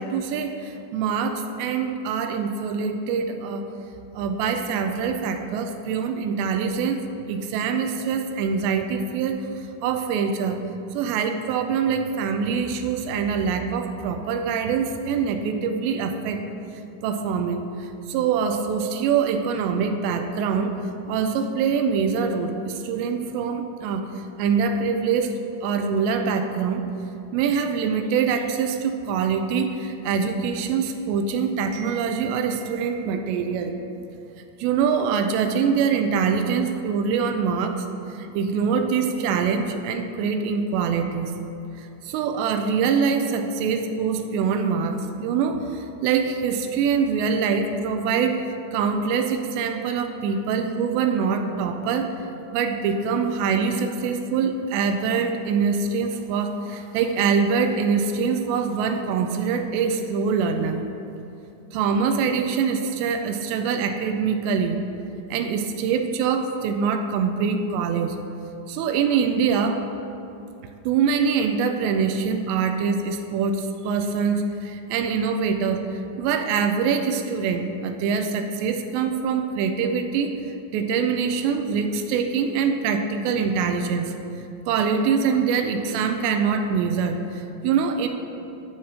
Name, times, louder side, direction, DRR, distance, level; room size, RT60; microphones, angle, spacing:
voice 1, 0.0-3.7 4.1-10.6 10.9-16.4 17.0-20.7 21.1-24.1 24.4-26.8 27.3-33.8 34.6-41.3 41.8-48.5 48.7-52.2 52.5-60.8 61.7-64.8 65.3-68.2 68.7-69.8 70.9-80.4 80.7-84.1 84.7-88.1, right 6 dB, 80° right, 6 dB, 2.6 m, -24 dB
11.0 x 4.0 x 7.7 m, 2.9 s
omnidirectional pair, 5.4 m